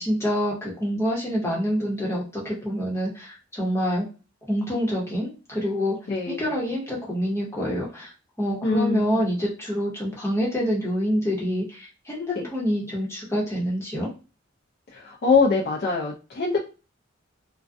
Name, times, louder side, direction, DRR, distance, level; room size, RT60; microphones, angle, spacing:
voice 1, 0.0-4.1 4.5-5.9 6.3-8.1 8.4-14.1, equal, 15° left, -4 dB, 0.9 m, -26 dB
voice 2, 6.1-6.4 8.6-9.4 12.3-12.5 14.9-16.6, left 4 dB, 50° left, -3 dB, 0.4 m, -23 dB
2.4 x 2.2 x 2.4 m, 0.32 s
head